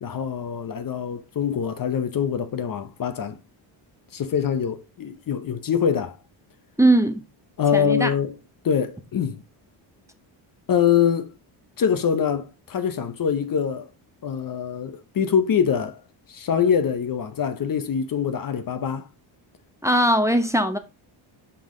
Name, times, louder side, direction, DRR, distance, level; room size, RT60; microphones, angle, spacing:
voice 1, 0.0-3.4 4.1-6.2 7.6-8.3 8.6-9.4 10.7-11.4 11.8-13.9 14.2-16.0 16.3-19.1, left 7 dB, 45° left, 0.8 m, -24 dB
voice 2, 6.8-7.2 7.7-8.1 19.8-20.8, right 1 dB, 5° right, 0.8 m, -19 dB
5.6 x 5.4 x 3.7 m
cardioid pair, 90°, 49 cm